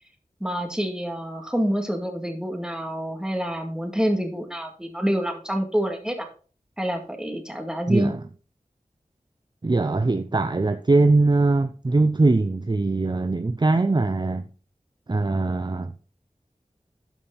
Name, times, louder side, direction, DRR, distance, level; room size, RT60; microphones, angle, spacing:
voice 1, 0.4-6.3 6.8-8.1, equal, 5° right, 2.2 m, -27 dB
voice 2, 7.9-8.2 9.6-14.5 15.1-15.9, right 3 dB, 35° right, 0.5 m, -21 dB
12.0 x 5.4 x 4.2 m
wide cardioid pair, 50°, 13 cm